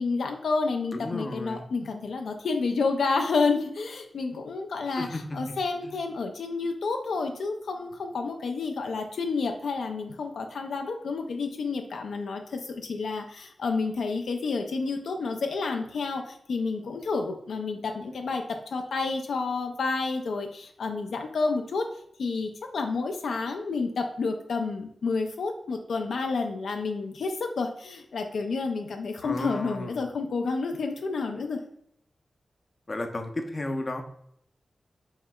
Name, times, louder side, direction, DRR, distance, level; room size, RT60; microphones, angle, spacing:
voice 1, 0.0-21.9 22.2-31.6, left 4 dB, 85° left, 4 dB, 0.4 m, -30 dB
voice 2, 0.9-1.6 5.0-5.1 5.8-5.9 29.2-30.0 32.9-34.0, left 2 dB, 40° left, 5 dB, 0.6 m, -33 dB
4.7 x 3.2 x 2.3 m, 0.71 s
cardioid pair, 65°, 0 cm